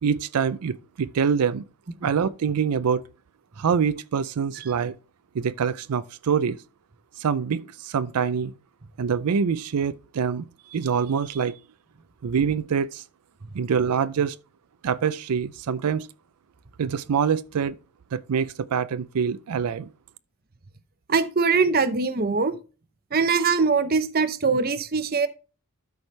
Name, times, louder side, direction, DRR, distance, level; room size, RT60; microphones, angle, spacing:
voice 1, 0.0-1.6 2.0-3.0 3.6-4.9 5.3-6.6 7.2-8.5 9.0-10.4 10.7-11.5 12.2-13.0 13.5-14.4 14.8-16.1 16.8-17.7 18.1-19.9, right 6 dB, 90° right, 0.4 m, -25 dB
voice 2, 21.1-22.6 23.1-25.3, right 4 dB, 40° right, 0.7 m, -22 dB
12.5 x 4.8 x 3.3 m
head